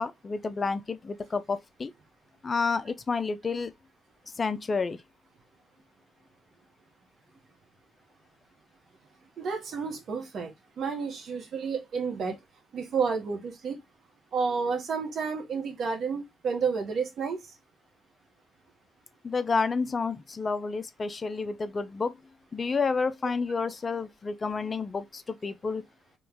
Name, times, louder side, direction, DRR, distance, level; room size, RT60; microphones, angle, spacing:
voice 1, 0.0-1.9 2.4-3.7 4.4-5.0 19.2-22.1 22.5-25.8, left 4 dB, 35° left, 0.5 m, -30 dB
voice 2, 9.4-12.4 12.7-13.8 14.3-17.4, right 5 dB, 60° right, 1.3 m, -31 dB
3.1 x 3.0 x 3.5 m
cardioid pair, 90°, 0 cm